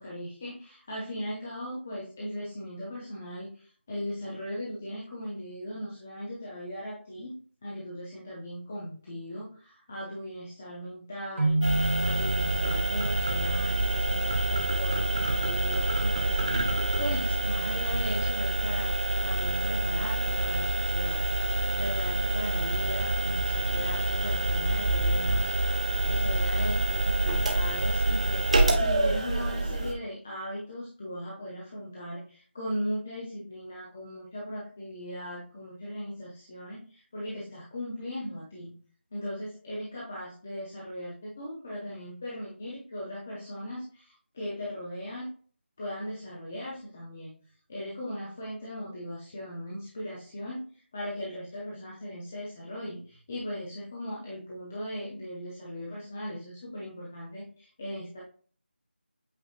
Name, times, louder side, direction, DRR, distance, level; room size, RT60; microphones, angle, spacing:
voice 1, 0.0-18.9 19.2-21.2 21.8-25.5 26.0-38.7 39.1-45.3 45.8-47.3 47.7-58.2, equal, 10° left, -5 dB, 0.3 m, -38 dB
Keyboard (musical), 11.4-13.2, right 2 dB, 85° right, 1.1 m, -29 dB
sound 1, 11.6-29.9, right 2 dB, 30° right, 0.7 m, -27 dB
7.9 x 2.7 x 2.3 m, 0.43 s
figure-of-eight pair, 175°, 6 cm